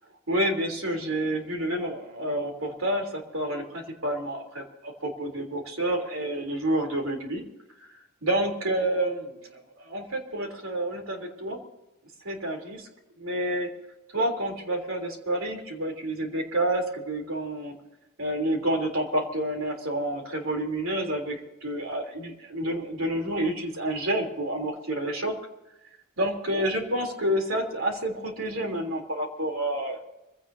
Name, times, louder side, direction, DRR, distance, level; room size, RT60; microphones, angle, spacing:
voice 1, 0.3-7.4 8.2-11.6 12.2-12.9 13.2-13.7 14.1-17.7 18.2-25.3 26.2-30.0, right 1 dB, 65° right, 3 dB, 3.6 m, -29 dB
25.0 x 16.5 x 2.8 m, 0.94 s
head